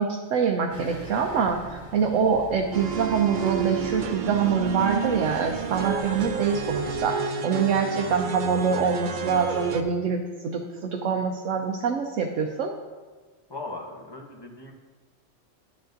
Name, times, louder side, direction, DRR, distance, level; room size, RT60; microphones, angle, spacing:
voice 1, 0.0-12.7, right 6 dB, 75° right, 2 dB, 1.0 m, -25 dB
sound 1, 0.7-7.1, equal, 40° right, 2.5 m, -43 dB
sound 2, 2.7-9.8, right 6 dB, 55° right, 0.6 m, -30 dB
voice 2, 13.5-14.7, left 2 dB, 20° left, 1 dB, 0.9 m, -38 dB
10.5 x 9.4 x 2.6 m, 1.4 s
omnidirectional pair, 1.3 m